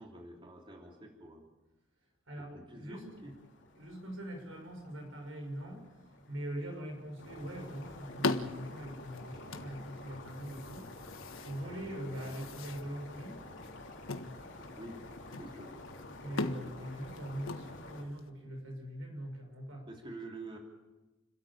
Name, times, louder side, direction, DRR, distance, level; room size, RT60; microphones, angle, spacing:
voice 1, 0.0-1.4 2.4-3.3 11.6-11.8 12.4-12.5 14.8-15.0 15.4-15.7 19.9-20.6, right 2 dB, 25° right, 0 dB, 3.1 m, -48 dB
voice 2, 2.3-3.1 3.8-6.0 6.3-13.4 16.2-19.9, right 1 dB, 80° right, 3 dB, 6.5 m, -42 dB
sound 1, 2.9-18.0, left 2 dB, 60° left, 3.5 m, -50 dB
sound 2, 7.2-18.3, left 3 dB, 90° left, 1.5 m, -41 dB
30.0 x 13.0 x 8.7 m, 1.1 s
head